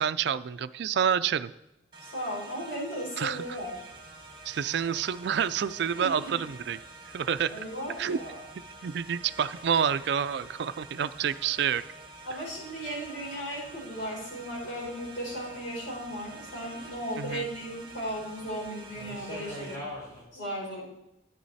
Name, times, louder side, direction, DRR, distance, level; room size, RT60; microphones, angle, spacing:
voice 1, 0.0-1.5 3.2-3.4 4.5-6.8 7.1-7.5 8.0-8.2 8.8-11.8 17.2-17.5, right 8 dB, 60° right, 13 dB, 0.4 m, -28 dB
sound 1, 1.9-19.8, right 2 dB, 25° right, 1.6 m, -48 dB
voice 2, 2.0-3.8 6.0-6.3 7.5-8.4 12.2-19.8 20.3-20.8, equal, 85° left, -5 dB, 4.6 m, -36 dB
sound 2, 3.4-20.2, left 1 dB, 20° left, 3.7 m, -50 dB
11.5 x 9.4 x 4.1 m, 0.90 s
head